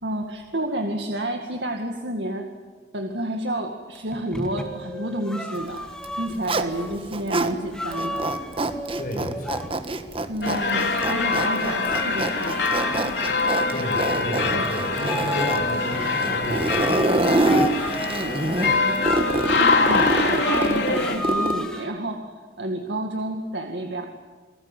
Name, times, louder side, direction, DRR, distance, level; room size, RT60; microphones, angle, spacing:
voice 1, 0.0-2.5 2.9-5.9 6.2-8.3 10.3-13.5 14.5-14.7 18.6-19.2 19.6-24.0, right 1 dB, 85° right, 4 dB, 2.2 m, -30 dB
sound 1, 3.9-6.9 7.7-9.7 10.9-13.0 14.9-17.0 17.4-18.3 19.0-21.9, left 1 dB, 5° left, 2.3 m, -33 dB
Zipper (clothing), 5.9-7.5 7.9-21.7, right 1 dB, 30° right, 1.5 m, -26 dB
voice 2, 9.0-9.8 13.7-17.1, equal, 50° left, 1 dB, 7.1 m, -32 dB
sound 2, 10.4-21.2, left 3 dB, 85° left, 4.1 m, -24 dB
28.5 x 19.5 x 9.2 m, 1.4 s
head